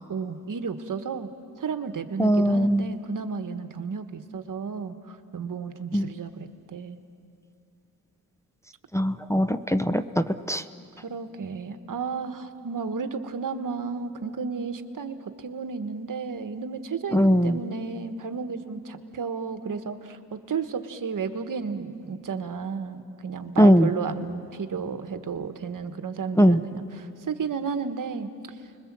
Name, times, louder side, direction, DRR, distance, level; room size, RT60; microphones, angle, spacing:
voice 1, 0.1-1.3 1.6-7.0 11.0-28.3, right 5 dB, 60° right, 9 dB, 1.4 m, -33 dB
voice 2, 2.2-2.9 5.9-6.1 8.9-10.6 17.1-17.6 23.6-23.9 26.4-26.6, equal, 10° left, 9 dB, 0.7 m, -20 dB
29.5 x 21.5 x 7.5 m, 2.5 s
cardioid pair, 65°, 36 cm